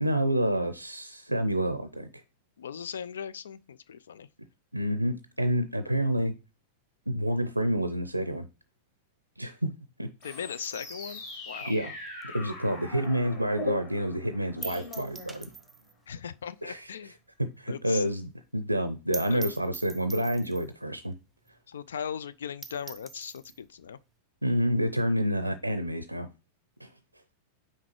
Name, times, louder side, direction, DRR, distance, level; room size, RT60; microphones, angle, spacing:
voice 1, 0.0-2.1 4.7-6.3 7.1-8.5 9.4-9.7 10.0-10.1 11.7-11.9 12.3-15.5 16.6-16.9 17.4-21.1 24.4-26.3 26.8-26.9, equal, 85° right, 0.5 m, -28 dB
voice 2, 2.6-4.3 10.2-11.7 16.1-17.1 17.7-18.0 19.3-19.4 21.7-24.0, left 7 dB, 65° left, 0.4 m, -38 dB
sound 1, 10.2-15.9, left 3 dB, 50° left, 2.6 m, -41 dB
sound 2, 10.6-13.3 13.6-13.7 14.0-14.1 14.6-16.0 16.3-16.4 16.7-16.8 17.2-17.3 17.5-17.6 17.9-18.0 18.3-18.4 18.8-18.9 19.1-20.8 21.5-21.6 21.9-22.0 22.3-22.4 22.6-23.6, right 4 dB, 5° right, 0.7 m, -44 dB
5.9 x 4.6 x 4.5 m
figure-of-eight pair, 90°, 0 cm